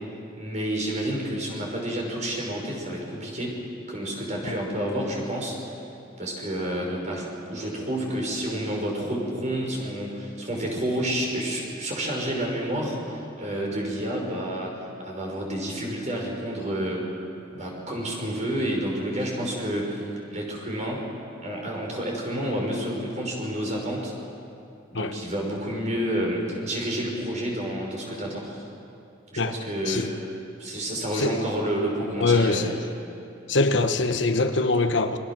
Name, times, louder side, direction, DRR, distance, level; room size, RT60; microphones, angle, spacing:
voice 1, 0.4-3.6 3.9-5.6 6.2-17.1 17.5-21.0 21.4-24.1 24.9-28.6 29.3-30.1 30.6-32.7, right 1 dB, 40° right, -1 dB, 5.7 m, -29 dB
voice 2, 32.2-32.7 33.5-35.2, left 3 dB, 75° left, 8 dB, 1.2 m, -23 dB
29.0 x 23.5 x 6.2 m, 2.7 s
head